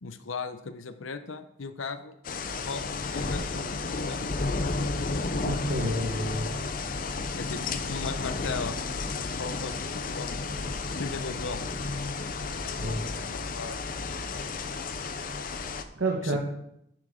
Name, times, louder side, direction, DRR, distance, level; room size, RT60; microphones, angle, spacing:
voice 1, 0.0-2.1 2.6-2.8 3.1-4.3 7.3-8.8 9.3-10.4 11.0-11.8 13.3-13.8 16.2-16.4, left 4 dB, 85° left, 10 dB, 0.7 m, -37 dB
sound 1, 2.2-15.8, left 3 dB, 45° left, 0.6 m, -32 dB
voice 2, 5.4-6.5 12.8-13.0 15.9-16.4, right 1 dB, 80° right, 0 dB, 1.4 m, -29 dB
11.0 x 7.5 x 3.8 m, 0.77 s
head